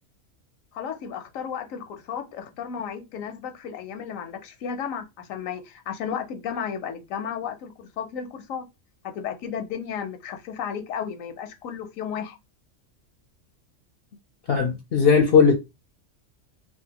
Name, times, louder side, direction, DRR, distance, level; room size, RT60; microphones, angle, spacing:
voice 1, 0.7-8.7 9.0-12.4, left 7 dB, 85° left, 1.0 m, -33 dB
voice 2, 14.5-15.6, left 5 dB, 60° left, 0.7 m, -18 dB
3.2 x 2.4 x 2.8 m
omnidirectional pair, 1.3 m